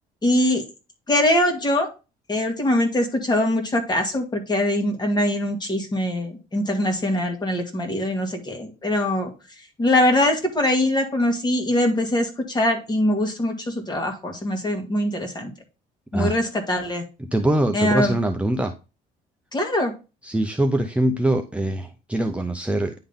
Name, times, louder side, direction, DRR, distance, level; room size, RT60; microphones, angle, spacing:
voice 1, 0.2-0.6 1.1-1.9 2.3-9.3 9.8-15.5 16.1-17.0 17.7-18.2 19.5-19.9, left 1 dB, 25° left, 3 dB, 2.1 m, -22 dB
voice 2, 17.2-18.7 20.2-22.9, right 1 dB, 5° right, 4 dB, 0.6 m, -23 dB
10.0 x 3.8 x 3.6 m, 0.30 s
cardioid pair, 110°, 17 cm